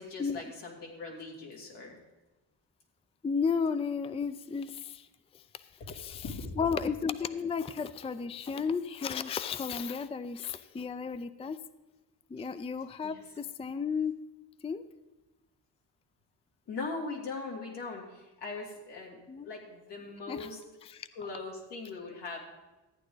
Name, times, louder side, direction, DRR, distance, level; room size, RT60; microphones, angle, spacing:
voice 1, 0.0-2.0 5.8-6.5 12.4-12.5 13.0-13.2 16.7-20.6 21.1-22.4, left 3 dB, 80° left, -2 dB, 3.0 m, -40 dB
voice 2, 3.2-5.1 5.9-6.2 6.6-11.6 12.3-14.2 14.6-14.8 19.3-19.5 20.3-20.5 20.8-21.1, left 6 dB, 15° left, 12 dB, 0.4 m, -33 dB
14.0 x 9.2 x 4.0 m, 1.1 s
cardioid pair, 80°, 42 cm